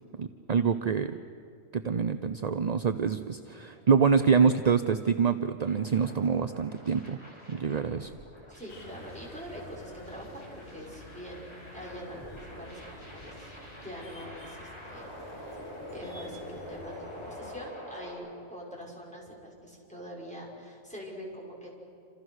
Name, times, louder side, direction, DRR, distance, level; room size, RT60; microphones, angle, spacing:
voice 1, 0.2-1.1 1.7-7.2 7.5-8.1, right 6 dB, 45° right, 9 dB, 0.6 m, -26 dB
sound 1, 5.6-18.1, equal, 20° left, 6.6 m, -47 dB
voice 2, 8.5-21.7, equal, 5° left, -3 dB, 5.6 m, -44 dB
sound 2, 8.7-17.5, left 2 dB, 45° left, 3.0 m, -50 dB
28.5 x 27.5 x 6.4 m, 2.5 s
omnidirectional pair, 1.4 m